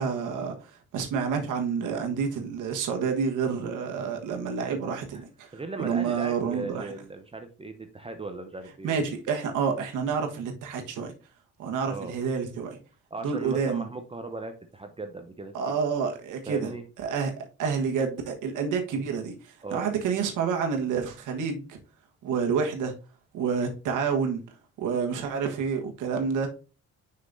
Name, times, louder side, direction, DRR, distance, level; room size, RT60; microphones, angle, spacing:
voice 1, 0.0-5.5 5.8-6.9 8.8-11.1 11.6-12.8 13.2-13.9 15.5-16.7 17.0-21.8 22.2-22.9 23.3-24.4 24.8-26.5, right 6 dB, 85° right, 1.3 m, -29 dB
voice 2, 5.5-9.0 11.9-12.2 13.1-15.8 16.5-16.8 19.6-19.8 26.1-26.3, right 3 dB, 20° right, 0.7 m, -38 dB
6.6 x 5.6 x 2.6 m
cardioid pair, 90°, 30 cm